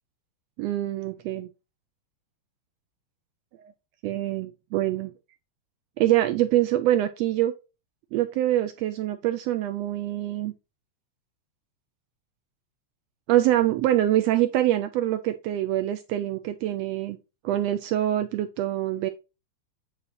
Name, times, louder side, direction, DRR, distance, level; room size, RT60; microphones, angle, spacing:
voice 1, 0.6-1.5 4.0-5.1 6.0-7.5 8.1-10.5 13.3-17.2 17.4-19.1, right 13 dB, 80° right, 8 dB, 1.5 m, -25 dB
8.3 x 3.3 x 4.0 m, 0.28 s
omnidirectional pair, 3.3 m